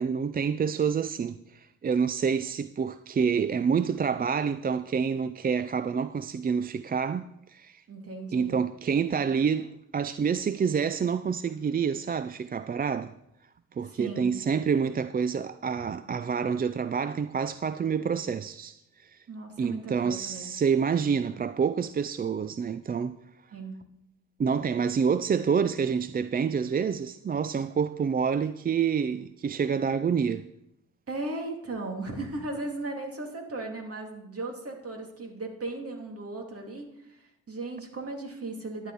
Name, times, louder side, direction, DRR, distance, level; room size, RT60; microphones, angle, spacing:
voice 1, 0.0-7.8 8.3-13.1 13.7-19.2 19.6-23.2 24.4-30.5, right 6 dB, 30° right, 0.4 m, -28 dB
voice 2, 7.9-8.5 13.9-14.3 19.3-20.4 23.5-23.8 31.1-38.9, right 2 dB, 50° right, 2.8 m, -37 dB
11.0 x 10.0 x 4.1 m
supercardioid pair, 55°, 31 cm